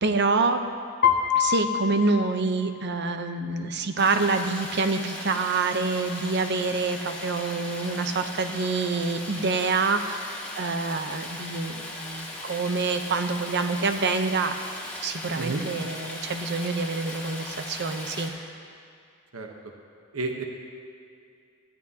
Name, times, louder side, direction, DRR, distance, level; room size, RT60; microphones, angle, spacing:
voice 1, 0.0-0.6 1.4-14.6 15.0-18.3, right 3 dB, 50° right, 7 dB, 0.7 m, -26 dB
Piano, 1.0-3.1, left 9 dB, 40° left, 0.7 m, -26 dB
Stream, 4.0-18.3, left 1 dB, 10° left, 2.0 m, -38 dB
voice 2, 20.1-20.4, right 3 dB, 70° right, 2 dB, 1.1 m, -30 dB
19.0 x 14.0 x 2.8 m, 2.3 s
head